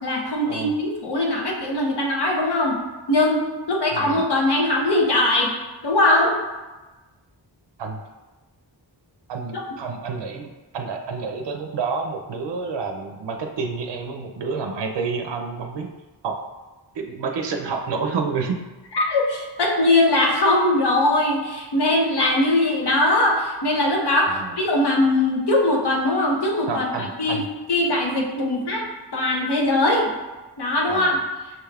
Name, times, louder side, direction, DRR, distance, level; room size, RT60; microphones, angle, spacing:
voice 1, 0.0-2.8 3.1-3.4 3.7-5.5 5.8-6.3 9.5-9.6 18.9-27.4 27.7-28.8 29.1-30.1 30.6-31.1, left 1 dB, 65° left, -1 dB, 0.9 m, -21 dB
voice 2, 3.9-4.2 7.8-8.0 9.3-15.9 16.2-16.4 16.9-18.6 24.3-24.6 26.6-27.5 30.9-31.2, right 4 dB, 75° right, 4 dB, 0.5 m, -29 dB
5.9 x 2.3 x 3.3 m, 1.2 s
wide cardioid pair, 100°, 43 cm